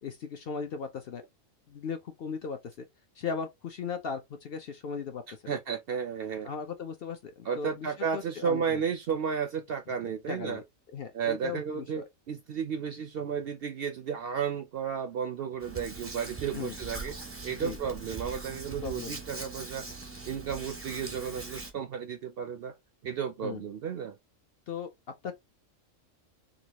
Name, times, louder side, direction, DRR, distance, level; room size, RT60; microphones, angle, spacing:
voice 1, 0.0-1.2 1.7-2.9 3.2-5.6 6.4-8.8 10.3-10.6 10.9-12.0 16.5-16.8 17.6-17.8 18.8-19.2 23.4-23.6 24.7-24.9 25.2-25.3, left 6 dB, 60° left, 0.7 m, -37 dB
voice 2, 5.5-6.5 7.4-10.6 11.1-17.1 17.4-19.9 20.3-22.7 23.0-24.2, right 7 dB, 65° right, 0.6 m, -33 dB
Hands, 15.6-21.7, right 3 dB, 15° right, 0.5 m, -41 dB
3.9 x 2.4 x 2.9 m
omnidirectional pair, 1.4 m